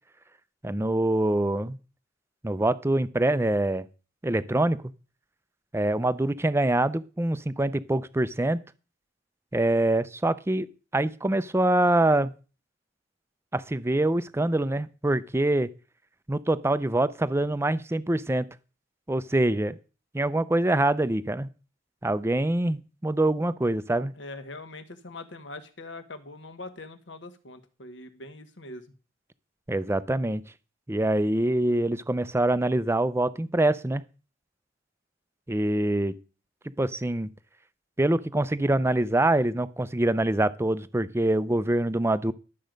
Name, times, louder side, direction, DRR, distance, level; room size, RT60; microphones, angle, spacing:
voice 1, 0.6-1.8 2.4-3.9 4.2-4.8 5.7-8.6 9.5-10.7 10.9-12.3 13.5-15.7 16.3-18.5 19.1-19.8 20.1-21.5 22.0-24.1 29.7-30.4 30.9-34.0 35.5-36.1 36.8-37.3 38.0-42.3, right 1 dB, 15° right, 15 dB, 0.5 m, -25 dB
voice 2, 24.1-28.9, left 2 dB, 70° left, 9 dB, 1.4 m, -42 dB
12.0 x 7.7 x 5.2 m, 0.35 s
head